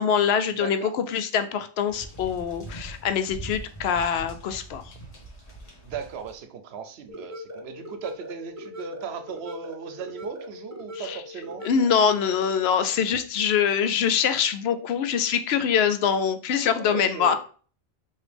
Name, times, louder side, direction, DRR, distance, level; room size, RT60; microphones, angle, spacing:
voice 1, 0.0-4.9 11.0-11.2 11.6-17.4, left 7 dB, 75° left, 9 dB, 0.8 m, -24 dB
voice 2, 0.5-0.9 5.8-11.7 16.8-17.4, right 7 dB, 80° right, 8 dB, 0.8 m, -37 dB
sound 1, 1.9-6.4, right 2 dB, 35° left, 1.2 m, -42 dB
sound 2, 7.1-12.1, left 2 dB, 30° right, 0.3 m, -40 dB
4.9 x 2.7 x 3.3 m, 0.40 s
omnidirectional pair, 1.1 m